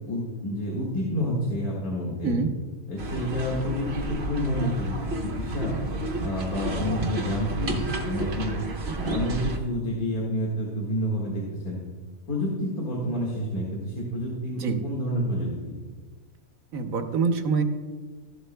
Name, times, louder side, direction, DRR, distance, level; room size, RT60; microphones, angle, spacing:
voice 1, 0.1-2.4 2.9-5.8 6.2-8.6 9.0-11.8 12.3-15.8, equal, 80° left, -4 dB, 2.2 m, -29 dB
sound 1, 3.0-9.6, right 2 dB, 50° right, 1.2 m, -31 dB
voice 2, 16.7-17.6, right 4 dB, 70° right, 6 dB, 1.3 m, -25 dB
14.0 x 11.0 x 2.2 m, 1.4 s
omnidirectional pair, 1.5 m